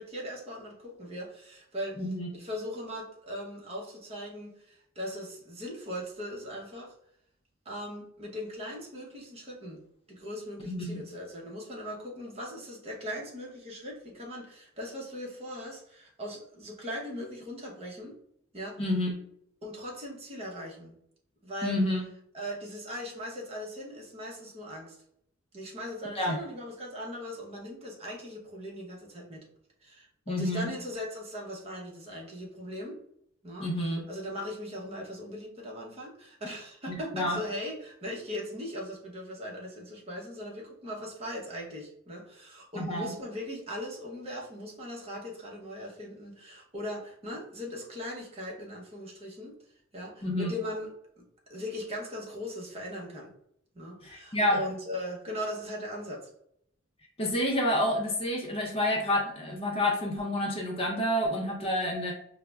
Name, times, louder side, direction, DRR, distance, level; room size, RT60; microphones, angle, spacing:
voice 1, 0.0-2.1 2.3-6.9 7.6-9.8 10.1-18.1 18.5-18.8 19.6-20.9 21.4-21.8 22.3-25.0 25.5-29.5 29.8-33.0 33.4-49.5 49.9-50.9 51.2-51.3 51.5-53.3 53.7-56.3 61.7-62.0, equal, 30° right, -2 dB, 0.8 m, -39 dB
voice 2, 2.0-2.3 10.7-11.0 18.8-19.1 21.6-22.0 26.2-26.4 30.3-30.7 33.6-34.0 36.9-37.4 42.8-43.1 50.2-50.5 54.0-54.6 57.2-62.1, left 1 dB, 25° left, 0 dB, 0.5 m, -29 dB
5.5 x 2.0 x 2.3 m, 0.71 s
head